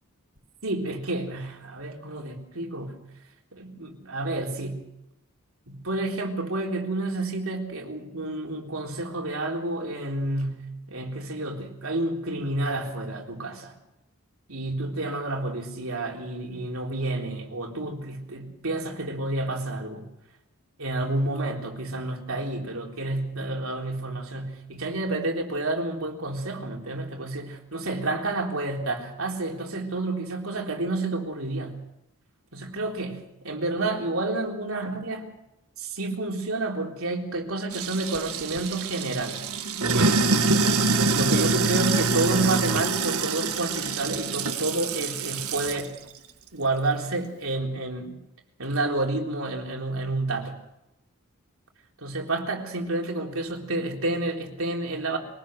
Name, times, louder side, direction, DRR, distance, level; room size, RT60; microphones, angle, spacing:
voice 1, 0.6-3.0 3.5-4.8 5.7-13.7 14.5-20.1 20.8-31.8 32.5-35.3 35.8-39.4 39.9-40.2 41.1-46.0 46.5-48.1 48.6-50.5 52.0-55.2, right 2 dB, 70° right, 1 dB, 3.8 m, -30 dB
Sink (filling or washing), 37.7-45.9, right 3 dB, 85° right, 1.8 m, -25 dB
23.5 x 18.5 x 6.6 m, 0.88 s
head